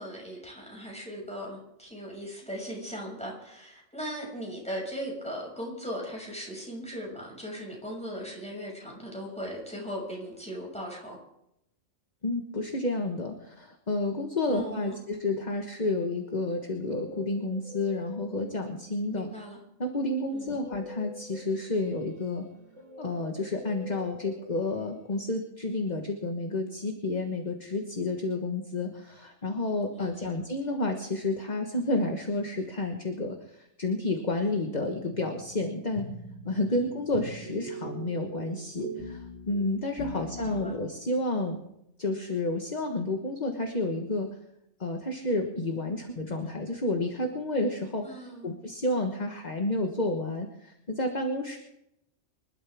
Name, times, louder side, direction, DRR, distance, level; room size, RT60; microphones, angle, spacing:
voice 1, 0.0-11.2 14.5-15.0 19.1-19.6 20.3-20.7 29.9-30.3 36.7-36.8 40.1-40.8 48.0-48.5, equal, 5° left, -2 dB, 6.5 m, -38 dB
voice 2, 12.2-19.3 19.8-22.4 23.0-36.1 36.4-41.6 42.0-44.3 44.8-51.6, left 2 dB, 35° left, 3 dB, 1.6 m, -30 dB
Guitar, 16.5-19.0 19.8-25.2, left 3 dB, 80° right, 2.3 m, -47 dB
sound 1, 35.1-40.6, right 2 dB, 80° left, 5.3 m, -41 dB
26.5 x 12.5 x 3.6 m, 0.81 s
omnidirectional pair, 1.2 m